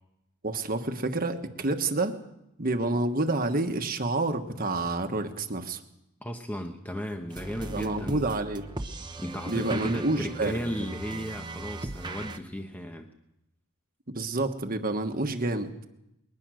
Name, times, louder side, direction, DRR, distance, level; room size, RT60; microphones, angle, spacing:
voice 1, 0.4-2.2 2.6-5.8 7.7-8.7 9.5-10.6 14.1-15.7, right 2 dB, 40° right, 6 dB, 1.4 m, -28 dB
voice 2, 6.2-8.4 9.2-13.1, equal, 10° left, 4 dB, 1.0 m, -35 dB
sound 1, 7.3-12.4, right 2 dB, 20° right, 1.0 m, -38 dB
21.5 x 19.5 x 6.4 m, 0.85 s
head